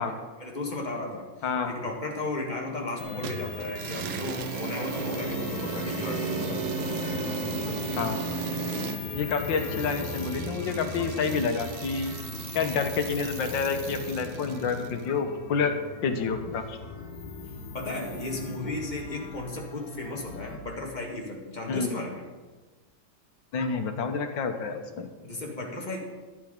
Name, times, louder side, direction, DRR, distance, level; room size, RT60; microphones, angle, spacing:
voice 1, 0.0-1.2 1.6-6.8 17.7-22.2 25.2-26.0, left 2 dB, 25° left, 0 dB, 1.9 m, -35 dB
sound 1, 3.0-20.6, left 5 dB, 55° left, 1.7 m, -38 dB
sound 2, 3.2-15.0, right 7 dB, 90° right, 1.4 m, -36 dB
voice 2, 7.3-8.2 9.1-12.1 12.5-15.7 16.0-16.8 21.7-21.9 23.5-25.1, left 5 dB, 80° left, 6 dB, 1.8 m, -29 dB
11.0 x 9.9 x 5.2 m, 1.3 s
omnidirectional pair, 2.0 m